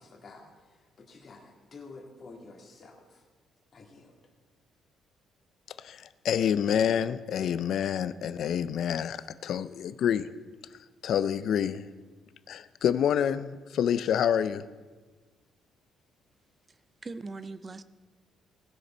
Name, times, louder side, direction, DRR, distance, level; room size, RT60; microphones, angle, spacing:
voice 1, 0.0-3.2 3.7-4.2, left 3 dB, 30° left, 0 dB, 2.0 m, -50 dB
voice 2, 5.8-10.3 11.0-11.9 12.5-14.6, left 8 dB, 50° left, 14 dB, 0.4 m, -27 dB
voice 3, 16.7-17.8, right 3 dB, 20° right, 14 dB, 0.4 m, -41 dB
19.0 x 6.6 x 4.4 m, 1.3 s
cardioid pair, 175°, 0 cm